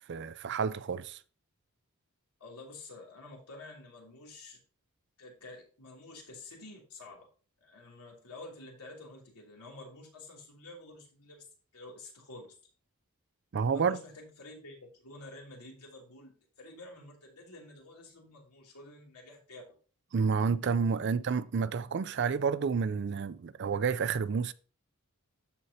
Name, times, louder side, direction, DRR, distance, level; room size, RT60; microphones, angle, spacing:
voice 1, 0.1-1.2 13.5-14.0 20.1-24.5, right 5 dB, 50° right, 0.4 m, -30 dB
voice 2, 2.4-4.6 5.2-7.3 7.6-11.4 11.7-12.5 13.7-19.6 21.0-21.1, left 2 dB, 85° left, 2.7 m, -49 dB
13.0 x 4.5 x 2.8 m
head